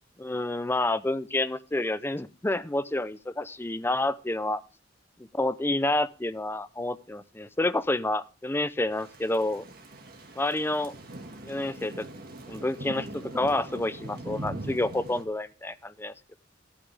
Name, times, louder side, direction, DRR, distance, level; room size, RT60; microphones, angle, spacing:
voice 1, 0.2-4.6 5.3-9.6 10.4-10.9 11.4-12.1 12.5-15.7 16.0-16.4, left 2 dB, 10° left, 13 dB, 0.5 m, -29 dB
Thunder / Rain, 8.9-15.2, right 1 dB, 50° right, 1.7 m, -41 dB
13.0 x 8.8 x 3.3 m, 0.31 s
head